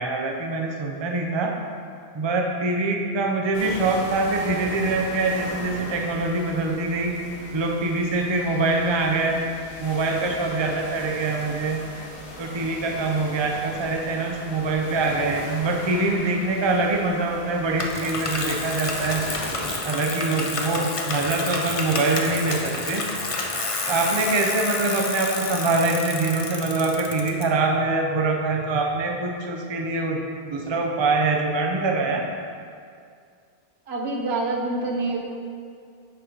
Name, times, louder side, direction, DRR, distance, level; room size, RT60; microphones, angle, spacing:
voice 1, 0.0-1.6 2.1-7.2 7.5-9.5 9.8-11.9 12.4-19.3 19.8-23.1 23.9-32.3, right 3 dB, 35° right, 2 dB, 0.6 m, -24 dB
sound 1, 3.5-19.8, left 1 dB, 85° left, 1.5 m, -38 dB
Bicycle, 17.8-27.4, left 3 dB, 35° left, 0.6 m, -30 dB
voice 2, 33.9-35.2, right 2 dB, 80° right, 1 dB, 1.1 m, -26 dB
7.4 x 4.2 x 5.2 m, 2.3 s
omnidirectional pair, 1.1 m